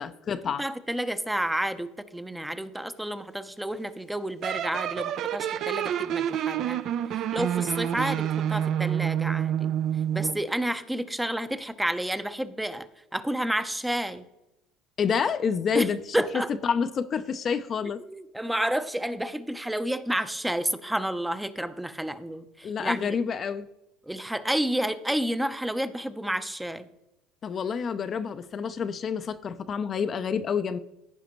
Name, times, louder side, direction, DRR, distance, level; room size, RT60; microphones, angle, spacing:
voice 1, 0.0-0.6 15.0-16.0 16.6-18.0 22.6-23.7 27.4-30.8, left 6 dB, 40° left, 10 dB, 0.5 m, -28 dB
voice 2, 0.6-6.8 7.1-9.7 10.1-14.2 15.7-16.5 18.1-23.2 24.1-26.9, right 1 dB, 5° right, 11 dB, 0.6 m, -30 dB
sound 1, 4.4-10.5, right 10 dB, 55° right, 0.4 m, -28 dB
15.0 x 5.0 x 3.0 m, 0.89 s
hypercardioid pair, 80°, 0 cm